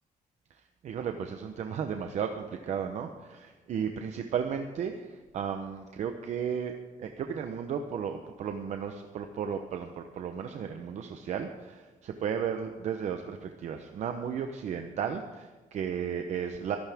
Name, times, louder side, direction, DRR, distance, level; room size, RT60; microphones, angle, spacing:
voice 1, 0.5-16.8, right 7 dB, 55° right, 6 dB, 0.9 m, -34 dB
23.0 x 11.5 x 3.6 m, 1.3 s
cardioid pair, 155°, 14 cm